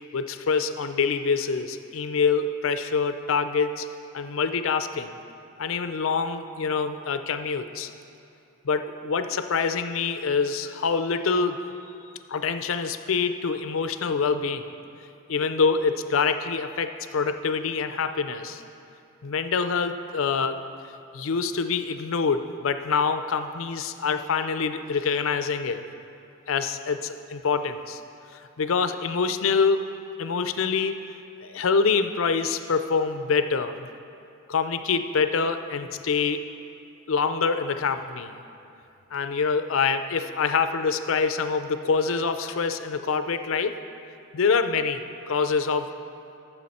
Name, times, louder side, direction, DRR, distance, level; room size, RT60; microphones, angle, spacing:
voice 1, 0.1-3.9 4.1-5.1 5.6-7.9 8.6-11.6 12.3-14.7 15.3-18.6 19.2-20.6 21.1-25.8 26.5-28.0 28.6-29.8 30.2-31.0 31.4-33.9 34.5-36.4 37.1-38.3 39.1-43.8 44.3-45.9, left 5 dB, 70° left, 10 dB, 0.5 m, -25 dB
13.0 x 7.0 x 4.2 m, 2.7 s
head